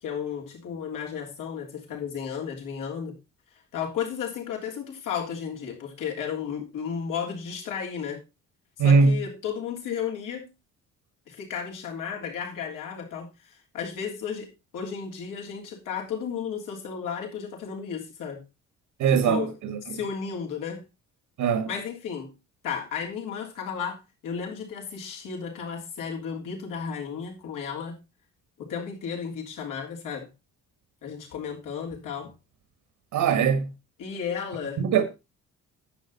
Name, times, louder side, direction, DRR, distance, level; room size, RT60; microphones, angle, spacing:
voice 1, 0.0-3.1 3.7-8.2 8.8-10.5 11.3-18.4 19.1-19.5 19.9-20.8 21.6-22.3 22.6-28.0 28.6-30.3 31.0-32.3 34.0-34.8, left 7 dB, 90° left, 3.4 m, -33 dB
voice 2, 8.8-9.2 19.0-20.0 21.4-21.7 33.1-33.7 34.8-35.0, right 5 dB, 85° right, 1.5 m, -21 dB
10.0 x 7.9 x 4.1 m
cardioid pair, 140°, 31 cm